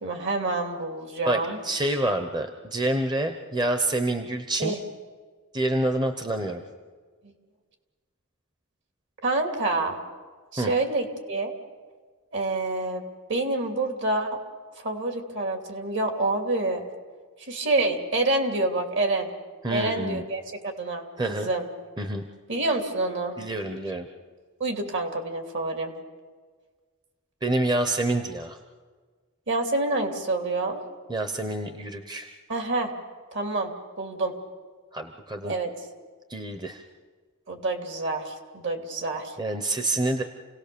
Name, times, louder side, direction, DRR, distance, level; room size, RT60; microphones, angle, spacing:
voice 1, 0.0-1.6 4.6-4.8 9.2-10.0 10.5-11.5 12.3-13.0 13.3-14.4 14.7-16.8 17.5-19.3 19.7-21.7 22.5-23.4 24.6-25.9 29.5-30.8 32.5-32.9 33.3-33.7 34.0-34.3 35.4-35.7 37.5-39.4, right 2 dB, 55° right, 4 dB, 2.9 m, -27 dB
voice 2, 1.3-4.7 5.5-6.6 10.6-10.7 19.6-20.2 21.2-21.5 22.0-22.2 23.4-24.1 27.4-28.6 31.1-32.3 34.9-35.5 36.3-36.8 39.4-40.2, right 2 dB, 20° right, 7 dB, 1.0 m, -27 dB
28.5 x 18.0 x 7.0 m, 1.5 s
head